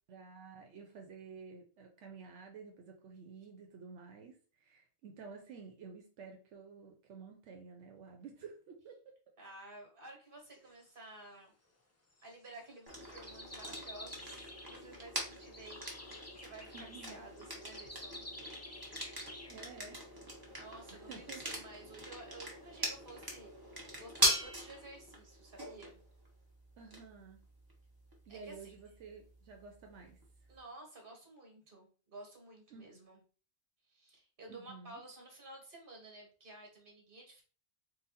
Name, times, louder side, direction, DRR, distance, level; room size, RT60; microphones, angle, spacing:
voice 1, 0.1-9.0 16.7-17.2 19.5-20.0 20.9-21.6 26.8-27.5 28.3-30.2 32.7-33.0 34.5-35.0, right 5 dB, 85° right, 2 dB, 1.0 m, -51 dB
voice 2, 9.4-11.5 12.2-18.2 20.5-23.5 23.9-26.0 28.3-28.7 30.5-33.2 33.9-37.4, right 2 dB, 50° right, 1 dB, 1.5 m, -53 dB
sound 1, 10.4-11.0 12.1-12.3 12.9-14.9 15.3-19.6 21.3-21.4 21.8-21.9, left 1 dB, 25° left, 0.3 m, -50 dB
sound 2, 12.9-30.6, right 1 dB, 20° right, 1.0 m, -41 dB
3.9 x 2.3 x 4.0 m, 0.39 s
omnidirectional pair, 1.2 m